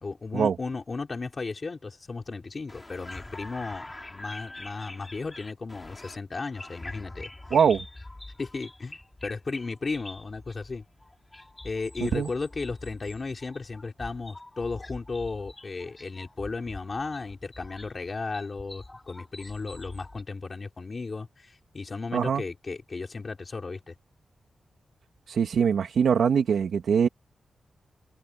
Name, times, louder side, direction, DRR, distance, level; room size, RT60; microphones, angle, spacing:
voice 1, 0.0-7.3 8.4-10.8 11.6-23.9, left 4 dB, 35° left, 4.4 m, -35 dB
sound 1, 2.7-20.2, left 2 dB, 15° left, 5.8 m, -44 dB
voice 2, 7.5-7.8 12.0-12.3 22.1-22.4 25.3-27.1, right 7 dB, 90° right, 2.4 m, -23 dB
wide cardioid pair, 170°, 0 cm